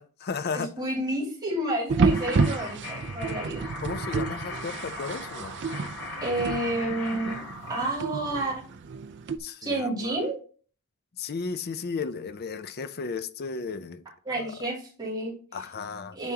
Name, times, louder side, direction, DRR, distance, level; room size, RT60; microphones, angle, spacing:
voice 1, 0.0-0.7 3.8-5.6 9.4-10.2 11.2-14.0 14.3-14.5 15.5-16.2, left 5 dB, 45° left, 0.5 m, -34 dB
voice 2, 0.5-3.7 6.2-7.4 7.7-8.6 9.6-10.4 14.2-15.3 16.1-16.3, right 1 dB, 20° right, 2.8 m, -30 dB
sound 1, 1.9-9.4, right 4 dB, 50° right, 0.4 m, -30 dB
sound 2, 2.0-7.9, left 2 dB, 70° left, 2.9 m, -39 dB
10.0 x 3.6 x 2.8 m
head